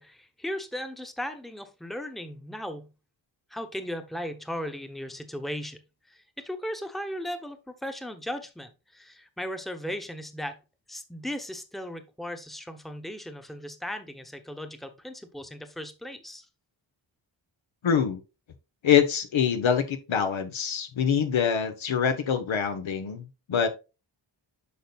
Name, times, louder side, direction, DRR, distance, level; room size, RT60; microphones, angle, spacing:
voice 1, 0.0-2.9 3.5-5.8 6.1-10.6 10.9-16.5, equal, ahead, 1.1 m, -37 dB
voice 2, 17.8-18.2 18.8-23.7, left 8 dB, 75° left, 1.2 m, -25 dB
8.4 x 5.4 x 2.4 m
cardioid pair, 60°, 47 cm